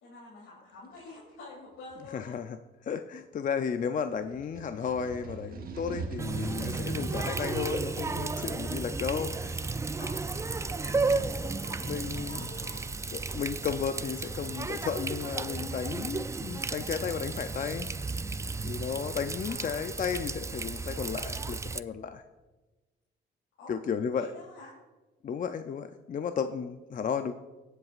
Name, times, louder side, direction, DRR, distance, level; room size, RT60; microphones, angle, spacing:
voice 1, 0.0-2.3 5.8-6.1 6.7-7.0 10.0-10.2 10.5-12.9 15.8-16.1 19.4-19.8 23.6-23.7 24.1-24.7, left 3 dB, 80° left, -6 dB, 3.3 m, -48 dB
sound 1, 0.9-1.2 1.9-2.1 4.2-8.5, right 4 dB, 45° right, 1.2 m, -41 dB
voice 2, 2.1-2.6 2.8-9.7 11.9-12.5 13.1-17.9 18.6-22.2 23.7-24.3 25.2-27.3, left 7 dB, 40° left, 8 dB, 0.5 m, -33 dB
Water tap faucet, 6.2-21.8, right 4 dB, 15° right, 0.3 m, -33 dB
18.5 x 8.0 x 2.5 m, 1.2 s
cardioid pair, 90°, 20 cm